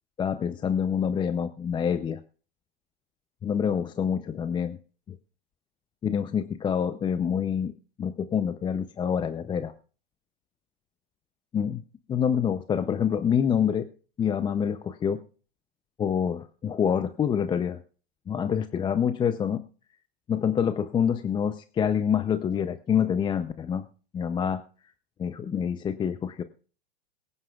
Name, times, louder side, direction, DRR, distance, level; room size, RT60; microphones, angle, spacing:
voice 1, 0.2-2.2 3.4-4.8 5.1-5.2 6.0-7.7 8.0-9.7 11.5-11.8 12.1-13.9 14.2-15.2 16.0-17.8 18.3-19.6 20.3-23.9 24.1-24.6 25.2-26.4, left 8 dB, 15° left, 11 dB, 0.5 m, -26 dB
23.0 x 9.6 x 2.3 m, 0.37 s
hypercardioid pair, 120°, 31 cm